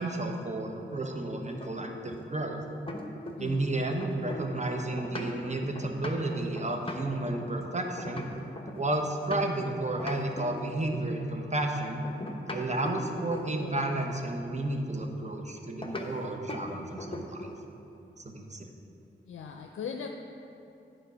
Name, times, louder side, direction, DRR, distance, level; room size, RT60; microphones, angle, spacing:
voice 1, 0.0-2.6 3.4-8.3 8.7-12.0 12.5-17.5 18.2-18.7, right 2 dB, 35° right, 3 dB, 1.1 m, -32 dB
sound 1, 1.6-3.6 3.9-9.7 10.0-11.2 12.0-13.8 15.8-16.1 16.5-16.7 17.0-17.6, left 1 dB, 25° left, 1.0 m, -40 dB
voice 2, 3.4-3.7 19.3-20.1, left 6 dB, 85° left, 3 dB, 0.5 m, -39 dB
9.0 x 4.6 x 6.0 m, 2.7 s
cardioid pair, 40°, 20 cm